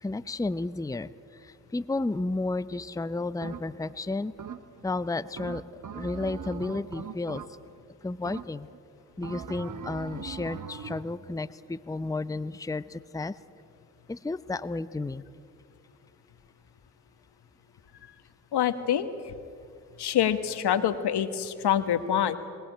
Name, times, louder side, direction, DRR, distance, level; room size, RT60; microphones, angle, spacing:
voice 1, 0.0-1.1 1.7-4.3 4.8-5.6 5.9-7.4 8.0-8.7 9.2-13.3 14.1-15.2, left 2 dB, 10° left, 14 dB, 0.7 m, -32 dB
sound 1, 3.4-3.9 4.4-4.9 5.4-7.8 8.3-8.8 9.2-11.2, right 6 dB, 50° right, 1.2 m, -40 dB
voice 2, 18.5-19.3 20.0-22.4, left 9 dB, 75° left, 11 dB, 1.4 m, -26 dB
21.5 x 17.5 x 9.0 m, 2.4 s
supercardioid pair, 45°, 40 cm